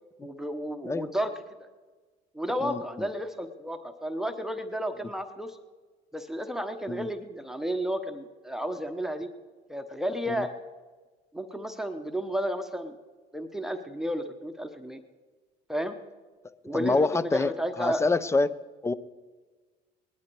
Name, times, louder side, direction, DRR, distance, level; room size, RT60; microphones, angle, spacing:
voice 1, 0.2-1.3 2.3-5.6 6.1-9.3 9.7-10.5 11.3-13.0 13.3-15.0 15.7-16.0 16.6-18.0, equal, ahead, 7 dB, 1.0 m, -32 dB
voice 2, 2.6-3.1 6.9-7.1 10.3-10.5 16.7-17.5 17.8-18.5 18.8-18.9, left 3 dB, 15° left, 16 dB, 0.6 m, -26 dB
19.0 x 11.5 x 4.7 m, 1.4 s
supercardioid pair, 85°, 18 cm